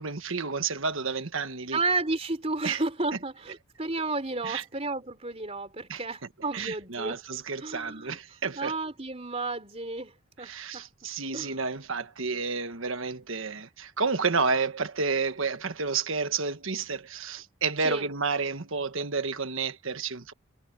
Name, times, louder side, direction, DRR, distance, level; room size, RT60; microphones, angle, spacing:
voice 1, 0.0-1.8 2.6-2.8 4.4-4.6 5.9-6.0 6.5-8.8 10.4-20.3, right 4 dB, 70° right, 1.4 m, -30 dB
voice 2, 1.7-7.2 7.6-8.2 8.6-10.1 10.4-10.9 11.3-11.6 17.8-18.1, right 3 dB, 30° right, 3.7 m, -32 dB
head